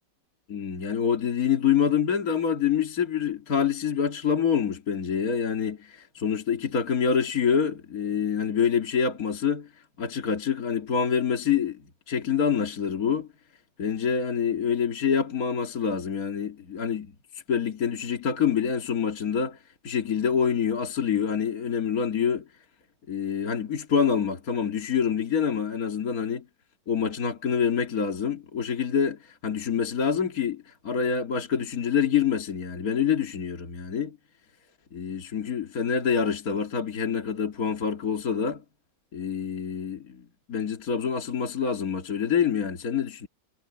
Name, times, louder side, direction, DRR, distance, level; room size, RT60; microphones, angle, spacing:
voice 1, 0.5-13.3 13.8-22.5 23.1-26.5 26.9-34.2 34.9-38.6 39.1-43.3, left 7 dB, 50° left, 2.6 m, -26 dB
omnidirectional pair, 2.0 m